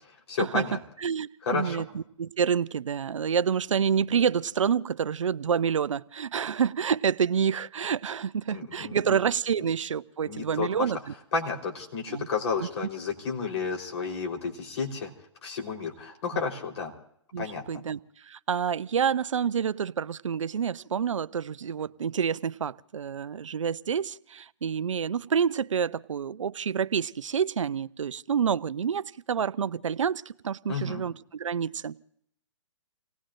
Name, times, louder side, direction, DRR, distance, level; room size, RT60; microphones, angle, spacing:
voice 1, 0.3-0.8 1.4-1.9 8.5-9.2 10.2-10.9 11.3-15.1 15.4-16.9 17.4-17.6 30.7-31.0, left 5 dB, 60° left, 1 dB, 3.9 m, -31 dB
voice 2, 1.0-11.0 12.1-12.3 16.3-16.4 17.3-32.0, right 7 dB, 85° right, 16 dB, 0.5 m, -28 dB
29.5 x 18.5 x 2.5 m, 0.68 s
hypercardioid pair, 140°, 16 cm